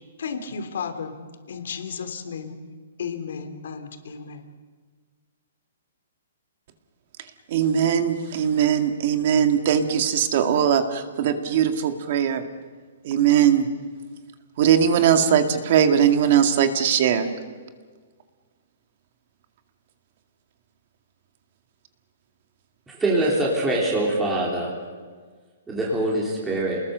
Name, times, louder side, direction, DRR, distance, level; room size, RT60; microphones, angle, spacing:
voice 1, 0.2-1.1 1.5-2.6 3.0-4.4, left 6 dB, 70° left, 7 dB, 3.2 m, -33 dB
voice 2, 7.5-12.4 13.0-13.7 14.6-17.3, right 8 dB, 40° right, 7 dB, 2.1 m, -20 dB
voice 3, 22.9-24.7 25.7-26.8, right 1 dB, 5° right, -4 dB, 3.5 m, -23 dB
29.0 x 20.5 x 6.8 m, 1.5 s
hypercardioid pair, 170°, 0 cm